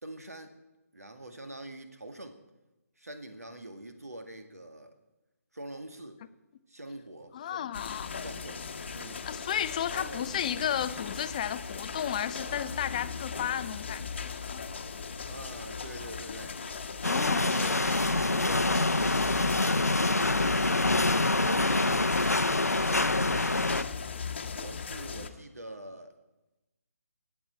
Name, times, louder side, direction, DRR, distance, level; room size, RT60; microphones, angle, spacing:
voice 1, 0.0-0.6 0.9-2.4 3.0-5.0 5.5-6.2 6.7-7.7 8.2-8.7 8.9-9.2 9.8-10.3 15.3-16.6 17.3-19.6 19.9-21.1 21.4-22.4 22.8-23.9 24.5-26.1, right 1 dB, 75° right, 7 dB, 1.8 m, -44 dB
voice 2, 7.3-8.2 9.3-14.6 17.0-17.5, left 9 dB, 30° left, 13 dB, 0.5 m, -33 dB
sound 1, 7.7-25.3, left 5 dB, 45° left, 1.1 m, -38 dB
sound 2, 17.0-23.8, left 2 dB, 80° left, 0.7 m, -26 dB
21.0 x 9.1 x 4.4 m, 1.0 s
figure-of-eight pair, 145°, 8 cm